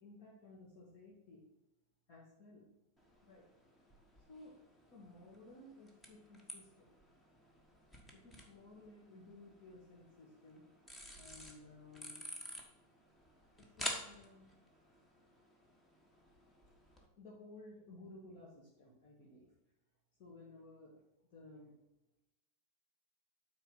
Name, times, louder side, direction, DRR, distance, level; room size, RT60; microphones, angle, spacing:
voice 1, 0.0-1.4 2.1-2.7 3.2-3.5 4.3-4.6 4.9-7.0 8.1-10.6 11.2-12.2 13.6-14.5 17.2-19.5 20.2-21.0 21.3-21.8, left 2 dB, 45° left, -5 dB, 2.0 m, -56 dB
sound 1, 3.0-17.1, equal, 10° left, 1.4 m, -51 dB
9.0 x 4.1 x 5.5 m, 0.94 s
figure-of-eight pair, 90°, 0 cm